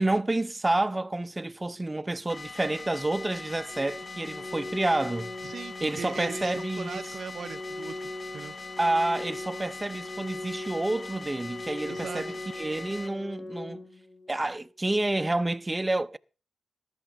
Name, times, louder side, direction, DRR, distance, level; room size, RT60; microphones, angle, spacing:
voice 1, 0.0-5.3 5.8-7.0 8.8-13.8 14.3-16.2, right 2 dB, 20° right, 0.7 m, -29 dB
sound 1, 2.3-13.1, left 3 dB, 35° left, 1.4 m, -42 dB
Organ, 3.7-14.7, left 2 dB, 60° left, 2.8 m, -40 dB
voice 2, 5.4-8.6 11.8-12.4, right 6 dB, 65° right, 0.6 m, -39 dB
14.5 x 11.5 x 3.9 m
cardioid pair, 65°, 0 cm